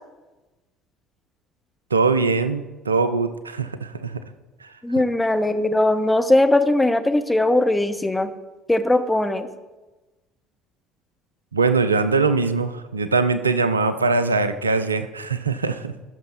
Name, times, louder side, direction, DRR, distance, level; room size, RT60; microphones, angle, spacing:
voice 1, 1.9-4.2 4.6-4.7 11.5-15.9, right 4 dB, 85° right, 11 dB, 0.4 m, -22 dB
voice 2, 4.8-8.3 8.7-9.5, left 1 dB, 10° left, 9 dB, 0.8 m, -19 dB
15.0 x 6.4 x 4.1 m, 1.2 s
figure-of-eight pair, 60°, 0 cm